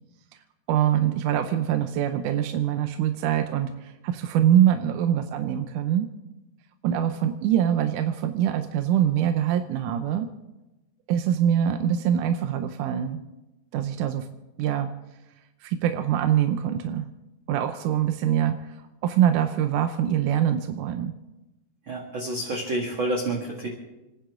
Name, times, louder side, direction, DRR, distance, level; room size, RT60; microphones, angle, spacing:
voice 1, 0.7-6.1 6.8-10.3 11.1-13.2 13.7-14.3 14.6-14.9 15.6-17.1 17.5-18.6 19.0-21.1, right 10 dB, 75° right, 7 dB, 2.0 m, -24 dB
voice 2, 21.9-23.8, right 1 dB, 40° right, -1 dB, 2.2 m, -29 dB
29.5 x 10.5 x 3.7 m, 1.0 s
omnidirectional pair, 4.1 m